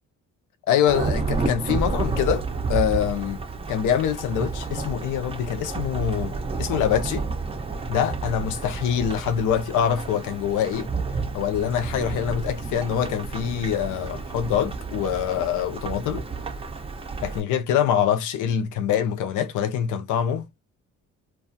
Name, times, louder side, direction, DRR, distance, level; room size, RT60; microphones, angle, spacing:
voice 1, 0.7-3.4 3.7-7.2 7.9-10.9 11.3-16.3 17.2-20.5, left 9 dB, 80° left, 0.6 m, -25 dB
Thunderstorm / Rain, 0.9-17.4, right 4 dB, 20° right, 0.5 m, -30 dB
2.4 x 2.3 x 2.6 m
cardioid pair, 90°, 30 cm